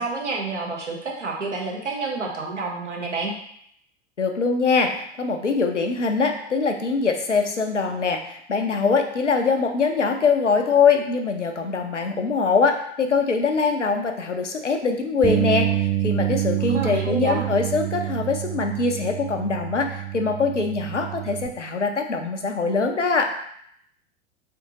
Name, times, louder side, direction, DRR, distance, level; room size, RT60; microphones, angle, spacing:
voice 1, 0.0-3.3 16.6-17.5, right 3 dB, 80° right, -1 dB, 1.0 m, -29 dB
voice 2, 4.2-23.3, left 4 dB, 90° left, 4 dB, 0.6 m, -23 dB
Bass guitar, 15.2-21.5, right 12 dB, 5° right, 0.3 m, -27 dB
3.8 x 3.3 x 2.9 m, 0.69 s
figure-of-eight pair, 85°, 35 cm